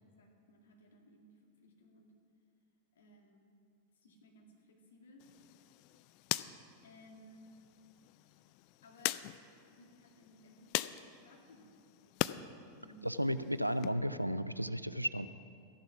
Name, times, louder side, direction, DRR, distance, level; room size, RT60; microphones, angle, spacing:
voice 1, 0.0-2.2 2.9-3.5 3.9-5.3 6.8-7.6 8.8-11.9 12.8-13.1, left 1 dB, 65° left, 0 dB, 2.1 m, -60 dB
sound 1, 5.2-12.4 12.8-13.9, left 17 dB, 45° left, 0.3 m, -41 dB
voice 2, 13.0-15.3, equal, 90° right, 14 dB, 0.4 m, -34 dB
14.0 x 10.5 x 5.8 m, 2.3 s
figure-of-eight pair, 90°, 0 cm